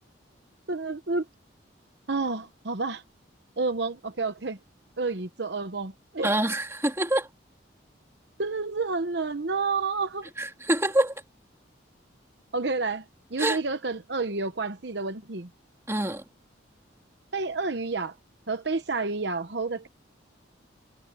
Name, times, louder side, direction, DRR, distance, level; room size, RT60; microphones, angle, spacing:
voice 1, 0.7-1.2 2.1-3.0 3.6-4.6 5.0-6.3 8.4-10.3 12.5-13.0 13.3-15.5 17.3-18.1 18.5-19.9, right 3 dB, 60° right, 1.0 m, -29 dB
voice 2, 6.2-7.3 10.4-11.1 13.4-13.6 15.9-16.2, right 1 dB, 15° right, 2.5 m, -25 dB
head